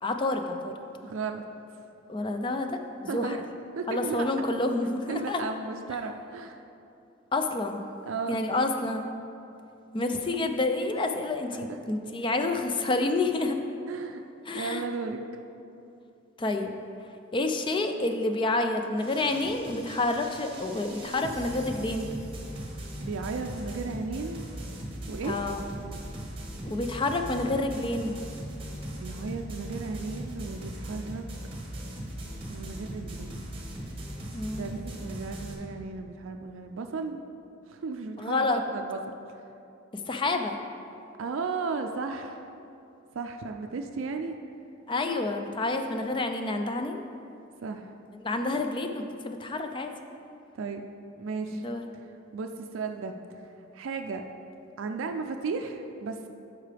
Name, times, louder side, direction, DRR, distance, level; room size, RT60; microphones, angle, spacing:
voice 1, 0.0-0.8 2.1-3.3 3.9-5.4 7.3-7.8 8.3-9.1 9.9-13.6 14.5-14.8 16.4-16.7 17.3-22.1 25.2-25.6 26.6-28.1 34.3-34.7 38.2-38.6 40.1-40.6 44.9-47.0 48.2-49.9 51.5-51.9, left 2 dB, 25° left, 5 dB, 0.4 m, -29 dB
voice 2, 1.0-1.4 3.1-3.5 3.8-4.3 5.1-6.6 8.0-8.4 11.5-11.6 13.9-14.2 14.5-15.2 23.0-24.4 25.1-25.4 29.0-31.2 32.5-33.5 34.5-37.3 37.7-39.0 41.2-42.5 43.1-44.4 47.6-47.9 50.5-50.8 51.2-51.6 52.3-53.4 53.7-54.2 54.8-56.3, right 4 dB, 75° right, 5 dB, 0.4 m, -35 dB
sound 1, 19.0-35.5, right 1 dB, 25° right, 1.1 m, -39 dB
12.0 x 4.8 x 3.4 m, 2.7 s
head